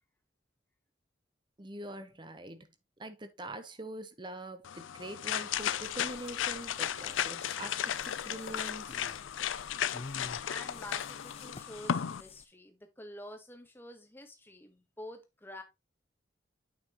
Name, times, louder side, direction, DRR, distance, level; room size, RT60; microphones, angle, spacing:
voice 1, 1.6-2.7 3.0-9.0, right 1 dB, 25° right, 0.9 m, -44 dB
sound 1, 4.6-12.2, left 9 dB, 90° left, 0.5 m, -35 dB
sound 2, 5.5-12.5, left 4 dB, 30° left, 0.4 m, -50 dB
voice 2, 10.2-15.6, left 1 dB, 10° left, 1.2 m, -48 dB
8.6 x 5.7 x 3.0 m
head